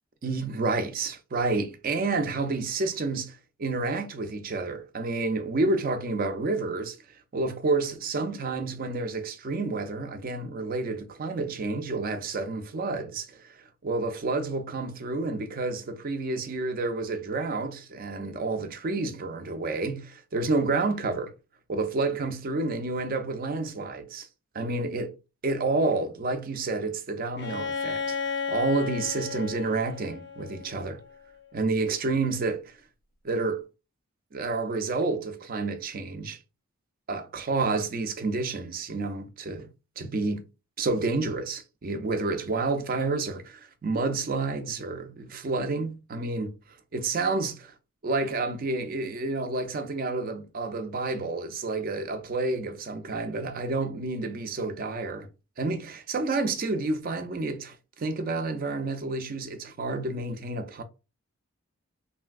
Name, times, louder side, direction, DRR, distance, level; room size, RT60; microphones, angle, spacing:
voice 1, 0.2-7.0 7.3-21.3 21.7-24.3 24.5-25.1 25.4-31.0 31.5-32.8 33.2-33.6 34.3-36.4 37.1-39.7 40.0-40.4 40.8-46.5 46.9-47.7 48.0-55.3 55.6-60.8, right 3 dB, 40° right, 0.4 m, -29 dB
Bowed string instrument, 27.4-31.1, left 5 dB, 50° left, 0.4 m, -33 dB
3.2 x 2.7 x 2.3 m
head